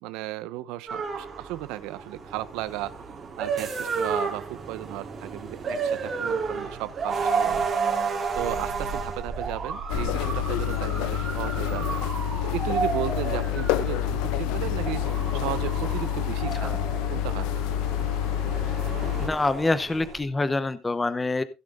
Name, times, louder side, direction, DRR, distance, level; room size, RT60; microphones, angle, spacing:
voice 1, 0.0-2.9 3.4-7.7 8.4-12.0 12.4-15.0 15.3-16.8 17.1-17.5, right 16 dB, 80° right, 14 dB, 0.9 m, -35 dB
sound 1, 0.9-20.2, right 5 dB, 25° right, 3.2 m, -32 dB
sound 2, 9.9-19.3, left 11 dB, 85° left, 0.8 m, -28 dB
voice 2, 19.2-21.4, left 2 dB, 10° left, 13 dB, 0.7 m, -26 dB
15.5 x 8.0 x 3.7 m, 0.27 s
cardioid pair, 165°, 0 cm